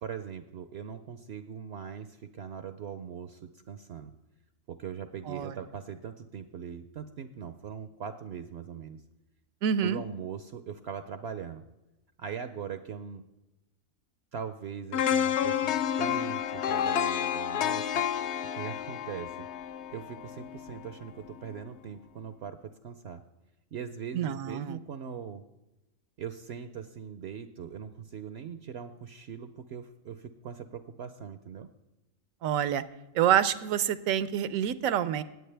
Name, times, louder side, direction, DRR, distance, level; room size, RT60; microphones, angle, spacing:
voice 1, 0.0-4.1 4.7-9.0 9.8-11.6 12.2-13.3 14.3-18.0 18.5-19.5 19.9-23.2 23.7-25.4 26.2-31.7, right 7 dB, 60° right, 10 dB, 0.7 m, -41 dB
voice 2, 9.6-10.0 24.1-24.8 32.4-32.8 33.1-35.2, right 9 dB, 80° right, 15 dB, 1.0 m, -27 dB
sound 1, 14.9-20.9 21.3-21.5, left 9 dB, 60° left, 0.8 m, -30 dB
19.0 x 8.0 x 3.3 m, 1.0 s
omnidirectional pair, 1.4 m